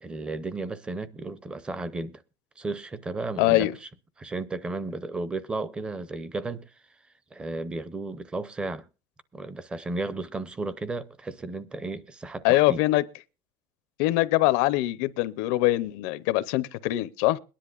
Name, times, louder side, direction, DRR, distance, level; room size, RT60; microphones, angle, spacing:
voice 1, 0.0-2.2 2.6-3.9 4.2-6.7 7.3-8.9 9.3-12.8, right 3 dB, 15° right, 0.6 m, -34 dB
voice 2, 3.4-3.7 12.4-13.0 14.0-17.4, left 17 dB, 85° left, 0.6 m, -23 dB
22.0 x 10.0 x 2.5 m
cardioid pair, 165°, 8 cm